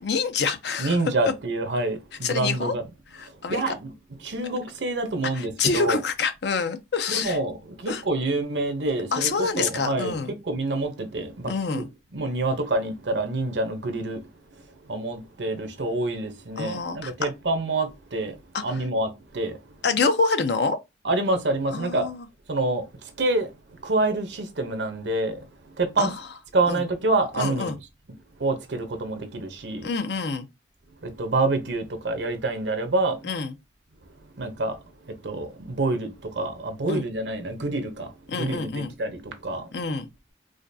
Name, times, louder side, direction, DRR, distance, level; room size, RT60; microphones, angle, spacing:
voice 1, 0.0-1.0 2.2-2.7 3.1-3.7 5.3-7.4 7.9-8.0 9.1-10.3 11.5-11.9 16.6-17.3 18.5-18.6 19.8-20.8 21.7-22.3 26.0-26.1 26.7-26.8 27.4-27.8 29.8-30.5 33.2-33.5 36.9-37.0 38.3-38.9 39.7-40.1, left 4 dB, 70° left, 0.6 m, -27 dB
voice 2, 0.8-2.9 3.2-3.9 4.2-6.0 7.1-11.8 12.1-14.3 14.6-19.6 21.0-22.1 22.5-26.2 26.5-27.8 28.4-29.9 31.0-33.2 34.2-39.7, right 2 dB, 85° right, 0.8 m, -27 dB
4.9 x 2.2 x 2.7 m
head